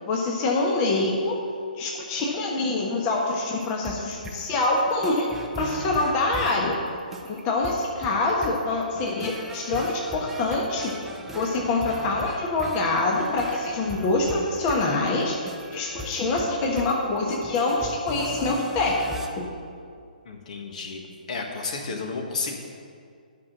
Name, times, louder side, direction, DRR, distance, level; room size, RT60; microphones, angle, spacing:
voice 1, 0.1-1.4 1.8-5.3 5.6-6.8 7.2-10.9 11.3-15.3 15.7-19.4, left 2 dB, 30° left, -1 dB, 1.3 m, -25 dB
sound 1, 3.6-19.3, equal, 5° right, 0.8 m, -39 dB
voice 2, 20.2-22.6, left 4 dB, 50° left, 3 dB, 1.6 m, -32 dB
11.0 x 6.0 x 6.6 m, 2.3 s
figure-of-eight pair, 130°, 5 cm